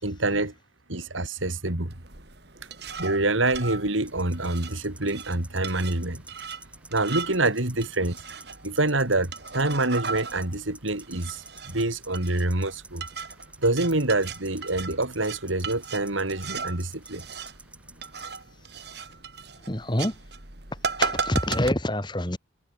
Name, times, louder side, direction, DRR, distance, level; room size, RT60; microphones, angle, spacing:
voice 1, 0.0-0.5 0.9-1.9 3.0-6.2 6.9-8.2 8.6-13.0 13.6-17.2, right 2 dB, 85° right, 3.4 m, -26 dB
sound 1, 1.9-21.7, right 5 dB, 55° right, 4.1 m, -37 dB
sound 2, 4.0-18.4, right 2 dB, 5° right, 6.8 m, -50 dB
voice 2, 19.7-20.2 21.0-22.4, left 1 dB, 25° left, 3.1 m, -26 dB
head